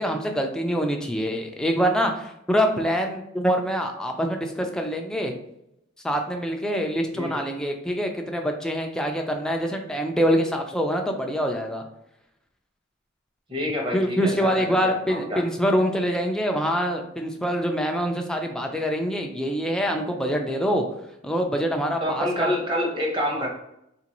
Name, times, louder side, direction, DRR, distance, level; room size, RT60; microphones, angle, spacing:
voice 1, 0.0-5.3 6.0-11.8 13.9-20.8 21.2-22.5, equal, 5° left, 3 dB, 0.3 m, -25 dB
voice 2, 13.5-14.3 14.6-15.4 22.0-23.5, left 1 dB, 25° right, -1 dB, 0.8 m, -27 dB
3.8 x 2.5 x 2.9 m, 0.81 s
head